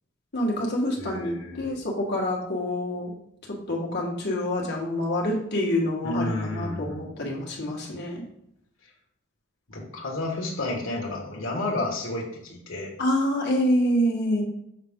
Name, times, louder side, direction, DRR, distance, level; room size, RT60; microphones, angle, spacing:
voice 1, 0.3-3.1 3.5-8.2 13.0-14.4, left 1 dB, 55° left, -2 dB, 1.6 m, -26 dB
voice 2, 1.0-1.7 6.0-7.1 9.7-12.9, left 2 dB, 75° left, -1 dB, 1.4 m, -31 dB
6.5 x 4.2 x 3.7 m, 0.75 s
head